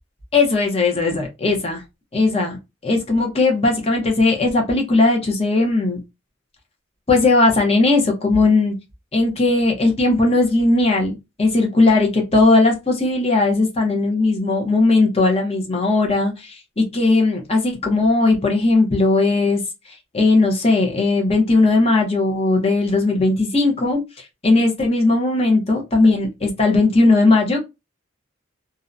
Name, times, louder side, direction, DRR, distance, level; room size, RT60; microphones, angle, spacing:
voice 1, 0.3-1.8 2.1-2.6 2.8-6.0 7.1-8.7 9.1-19.6 20.1-27.6, left 3 dB, 30° left, 0.8 m, -18 dB
2.6 x 2.2 x 2.5 m
head